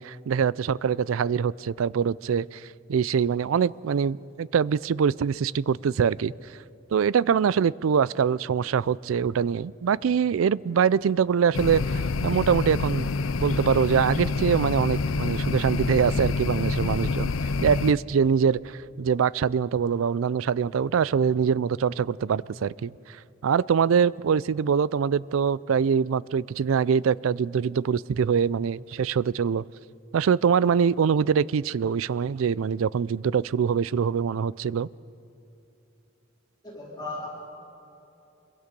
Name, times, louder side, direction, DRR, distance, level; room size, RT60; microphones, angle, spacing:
voice 1, 0.0-6.3 6.9-13.1 13.4-17.3 17.6-23.2 23.4-29.6 30.1-34.9, right 7 dB, 85° right, 21 dB, 0.4 m, -24 dB
sound 1, 11.5-17.9, left 3 dB, 90° left, 0.5 m, -27 dB
voice 2, 36.6-37.3, left 2 dB, 20° left, -3 dB, 3.2 m, -36 dB
26.0 x 23.0 x 5.3 m, 2.9 s
head